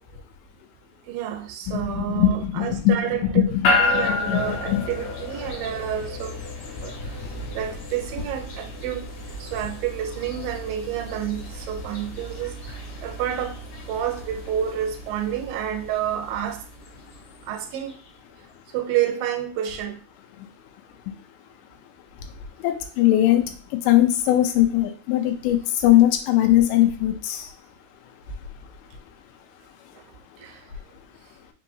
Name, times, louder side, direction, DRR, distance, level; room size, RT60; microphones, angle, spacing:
voice 1, 1.1-6.4 6.8-7.2 7.6-9.0 9.4-13.6 13.9-16.7 17.4-17.9 18.7-20.0 30.4-30.6, right 10 dB, 80° right, 2.2 m, -29 dB
voice 2, 1.7-4.9 7.3-7.5 22.6-27.5, left 13 dB, 80° left, 2.0 m, -21 dB
sound 1, 3.6-17.9, left 2 dB, 65° left, 2.0 m, -31 dB
5.5 x 2.8 x 2.6 m
omnidirectional pair, 4.3 m